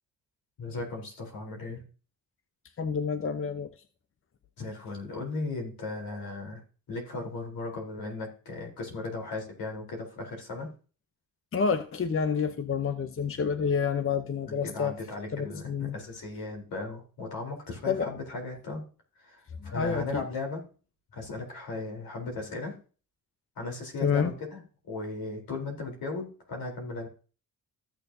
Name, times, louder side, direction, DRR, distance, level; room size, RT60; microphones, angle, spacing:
voice 1, 0.6-1.8 4.6-6.6 6.9-10.7 14.5-18.8 19.2-20.6 21.1-22.7 23.6-24.6 24.9-27.1, left 3 dB, 75° left, 3.9 m, -36 dB
voice 2, 2.8-3.7 11.5-14.9 15.3-16.0 17.9-18.1 19.6-20.2 24.0-24.3, left 6 dB, 35° left, 0.8 m, -28 dB
15.0 x 6.8 x 2.7 m
supercardioid pair, 65°, 36 cm